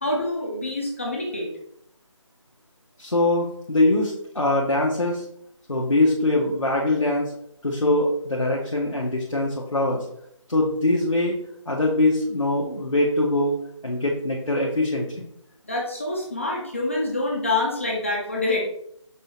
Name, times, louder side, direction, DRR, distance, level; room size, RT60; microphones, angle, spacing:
voice 1, 0.0-1.5 15.7-18.6, left 2 dB, 25° left, -3 dB, 0.6 m, -26 dB
voice 2, 3.0-5.2 5.7-7.3 7.6-10.0 10.5-11.4 11.7-13.5 13.8-15.3, left 2 dB, 75° left, -2 dB, 0.8 m, -22 dB
5.5 x 2.7 x 2.8 m, 0.71 s
figure-of-eight pair, 160°, 16 cm